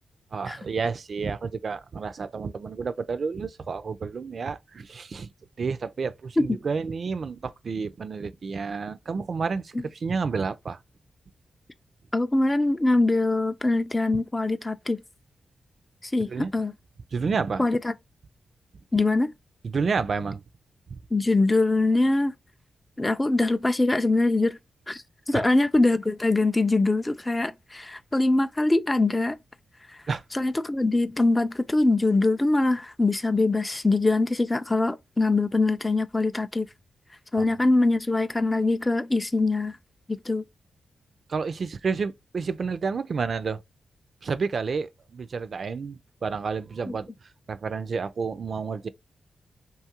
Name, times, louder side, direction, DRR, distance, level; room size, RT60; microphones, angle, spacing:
voice 1, 0.3-5.3 5.6-10.8 16.3-16.5 17.1-17.6 19.6-20.4 20.9-21.0 25.3-25.4 30.1-30.2 37.4-37.6 41.3-43.6 44.2-47.1 47.5-48.9, right 5 dB, 60° right, 0.3 m, -30 dB
voice 2, 12.1-15.0 16.0-16.7 17.6-17.9 18.9-19.3 21.1-22.4 23.0-24.6 24.9-29.4 29.9-30.0 30.3-36.7 37.3-39.8 40.1-40.4 46.9-47.0, left 2 dB, 20° left, 0.3 m, -23 dB
2.7 x 2.3 x 2.8 m
cardioid pair, 60°, 0 cm